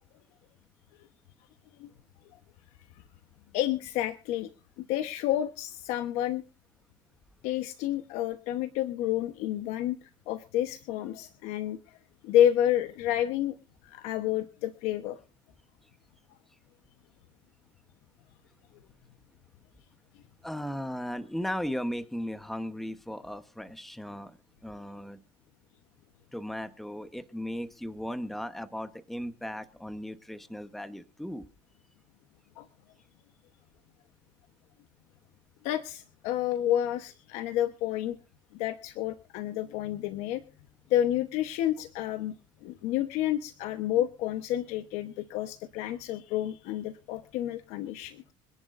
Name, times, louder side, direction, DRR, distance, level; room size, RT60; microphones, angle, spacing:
voice 1, 3.5-4.5 4.8-6.4 7.4-12.0 12.2-13.5 13.8-15.2 32.6-32.7 35.6-38.2 38.5-40.4 40.9-42.3 42.6-48.3, left 12 dB, 80° left, 8 dB, 1.1 m, -30 dB
voice 2, 20.4-24.4 24.6-25.2 26.3-31.5, equal, ahead, 10 dB, 1.1 m, -36 dB
25.5 x 11.0 x 2.6 m, 0.34 s
cardioid pair, 110°, 11 cm